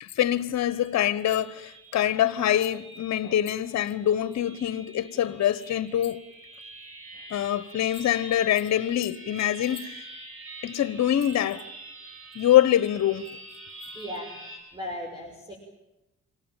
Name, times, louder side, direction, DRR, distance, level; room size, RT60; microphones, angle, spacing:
voice 1, 0.0-6.2 7.3-10.0 10.6-11.6 12.3-13.3, left 11 dB, 65° left, 1.2 m, -24 dB
sound 1, 0.6-14.6, right 2 dB, 45° right, 7.4 m, -46 dB
voice 2, 13.9-15.5, left 1 dB, 15° right, 6.4 m, -37 dB
26.5 x 18.0 x 9.1 m
cardioid pair, 90°, 30 cm